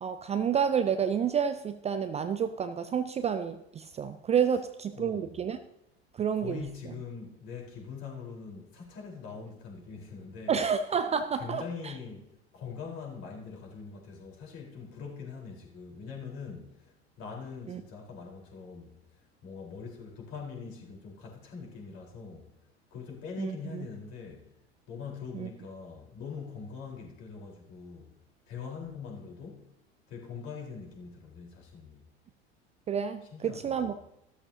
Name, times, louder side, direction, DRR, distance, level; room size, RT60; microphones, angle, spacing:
voice 1, 0.0-5.6 6.1-6.6 10.5-11.9 17.7-17.8 23.4-23.8 25.4-25.5 32.9-33.9, right 7 dB, 20° right, 10 dB, 0.5 m, -29 dB
voice 2, 4.9-5.4 6.3-10.6 11.3-22.5 22.9-24.6 24.9-28.1 28.5-29.7 30.1-32.1 33.3-33.9, left 5 dB, 50° left, -1 dB, 4.4 m, -43 dB
14.0 x 13.0 x 2.9 m, 0.83 s
figure-of-eight pair, 75°, 33 cm